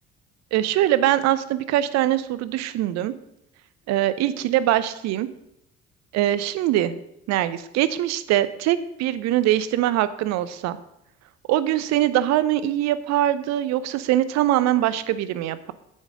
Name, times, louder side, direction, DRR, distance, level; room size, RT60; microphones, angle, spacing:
voice 1, 0.5-3.1 3.9-5.3 6.1-7.0 7.3-10.8 11.5-15.7, right 13 dB, 60° right, 15 dB, 0.7 m, -22 dB
8.2 x 5.4 x 6.4 m, 0.82 s
hypercardioid pair, 55°, 31 cm